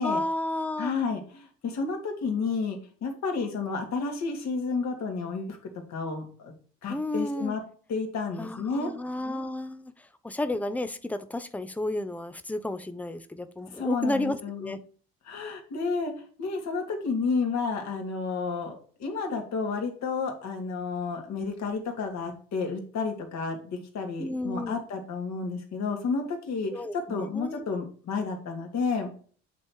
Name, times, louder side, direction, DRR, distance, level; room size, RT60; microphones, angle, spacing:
voice 1, 0.0-0.9 6.9-7.5 8.4-14.8 24.2-24.8 26.7-27.7, left 1 dB, 5° left, 11 dB, 0.7 m, -32 dB
voice 2, 0.8-6.5 6.8-7.6 7.9-8.9 13.7-14.7 15.3-16.1 16.4-29.1, left 4 dB, 60° left, 3 dB, 2.2 m, -31 dB
8.3 x 3.4 x 4.5 m, 0.43 s
supercardioid pair, 65°, 31 cm